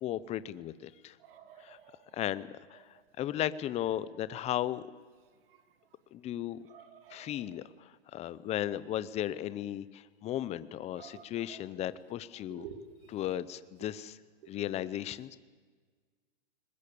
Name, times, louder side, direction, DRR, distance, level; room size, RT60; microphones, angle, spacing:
voice 1, 0.0-1.2 1.6-1.8 2.1-2.8 3.2-4.8 6.1-6.6 7.1-12.6 13.1-14.2 14.5-15.4, left 12 dB, 20° left, 16 dB, 0.7 m, -35 dB
voice 2, 1.3-1.8 6.7-7.3 11.0-11.2 12.5-12.8, right 10 dB, 60° right, 8 dB, 2.7 m, -49 dB
23.0 x 20.5 x 8.5 m, 1.5 s
hypercardioid pair, 140°, 31 cm